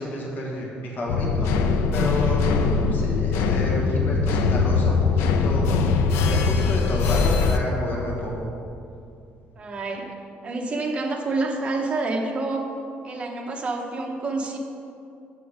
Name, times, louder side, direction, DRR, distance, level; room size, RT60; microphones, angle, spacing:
voice 1, 0.0-1.5 1.9-8.4, left 1 dB, 45° left, -3 dB, 1.4 m, -30 dB
sound 1, 1.1-7.6, left 4 dB, 85° left, 0.5 m, -21 dB
voice 2, 2.4-2.9 9.6-10.1 10.4-12.6 13.0-14.6, right 3 dB, 30° right, 2 dB, 0.9 m, -28 dB
7.0 x 5.8 x 4.9 m, 2.6 s
cardioid pair, 135°, 4 cm